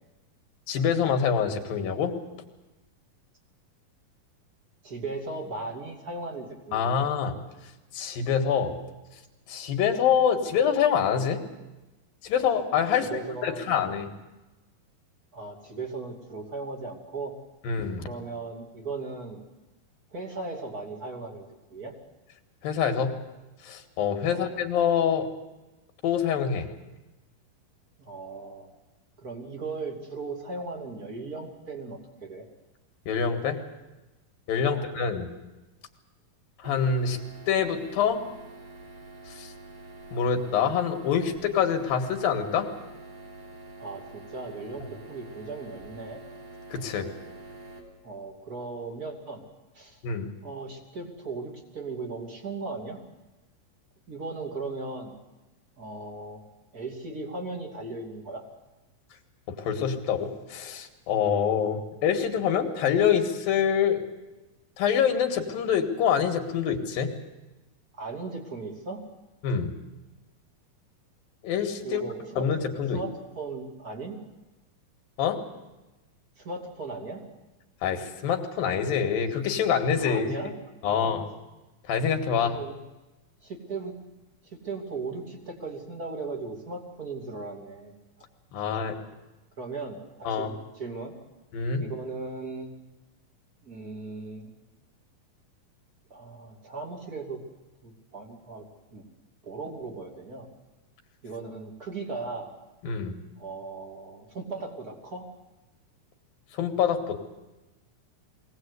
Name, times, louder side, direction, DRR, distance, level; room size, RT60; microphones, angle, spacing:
voice 1, 0.7-2.2 6.7-7.4 7.9-8.8 9.5-11.4 12.2-14.1 17.7-18.1 22.6-23.1 23.6-25.3 26.0-26.7 33.1-33.6 34.5-35.3 36.6-37.2 37.5-38.2 39.3-39.5 40.1-42.7 46.7-47.1 50.0-50.3 59.5-64.1 64.8-67.1 69.4-69.7 71.4-72.0 72.4-73.0 75.2-75.4 77.8-80.3 80.8-81.3 81.9-82.6 88.5-89.0 90.3-90.5 91.5-91.9 102.8-103.2 106.6-107.2, left 7 dB, 85° left, 5 dB, 3.5 m, -25 dB
voice 2, 4.8-7.0 13.0-13.9 15.3-17.3 18.0-19.4 20.1-21.4 21.7-21.9 24.3-24.5 28.0-28.7 29.2-32.4 34.7-34.8 43.8-46.2 48.0-49.4 49.7-50.0 50.4-53.0 54.1-55.1 55.8-56.4 56.7-58.4 68.0-69.0 71.8-72.5 72.9-74.2 76.4-77.2 80.0-80.5 80.8-81.2 82.3-82.8 83.4-83.9 84.6-88.0 89.6-91.1 91.8-92.7 93.6-94.5 96.1-97.4 97.8-98.6 98.9-99.0 99.4-100.5 101.2-102.5 103.4-105.3, right 3 dB, 30° right, 2 dB, 2.8 m, -37 dB
sound 1, 36.6-47.8, right 2 dB, 55° right, 4.5 m, -46 dB
22.5 x 18.0 x 8.2 m, 1.1 s
omnidirectional pair, 4.0 m